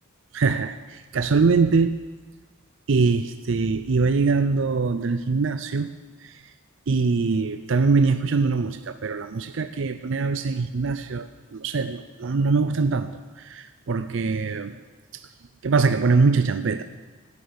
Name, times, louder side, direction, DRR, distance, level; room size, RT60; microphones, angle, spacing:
voice 1, 0.3-2.0 2.9-5.9 6.2-6.4 6.9-14.8 15.1-15.3 15.6-16.8, right 4 dB, 65° right, 10 dB, 0.5 m, -23 dB
14.5 x 6.8 x 9.7 m, 1.3 s
head